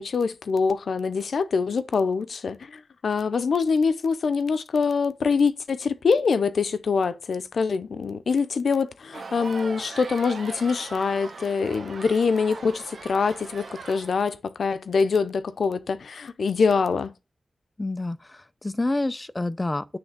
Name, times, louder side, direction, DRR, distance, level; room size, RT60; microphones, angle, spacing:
voice 1, 0.0-17.1, left 5 dB, 90° left, 0.6 m, -24 dB
sound 1, 9.1-14.2, right 4 dB, 65° right, 1.2 m, -40 dB
voice 2, 17.8-20.0, left 2 dB, 20° left, 0.5 m, -28 dB
9.7 x 3.3 x 6.5 m
wide cardioid pair, 135°, 0 cm